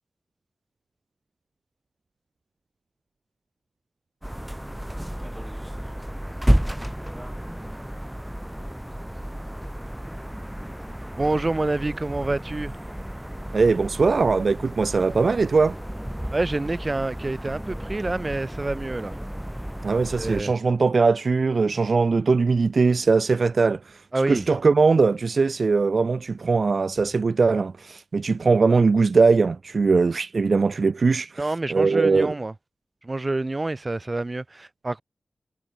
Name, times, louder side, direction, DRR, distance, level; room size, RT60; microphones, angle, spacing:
sound 1, 4.2-20.4, equal, 5° right, 1.4 m, -31 dB
voice 1, 11.1-12.8 16.3-19.2 20.2-20.5 24.1-24.5 31.4-32.5 33.0-35.0, right 2 dB, 35° right, 1.8 m, -27 dB
voice 2, 13.5-15.8 19.8-32.3, right 4 dB, 65° right, 0.4 m, -21 dB
wide cardioid pair, 60°, 0 cm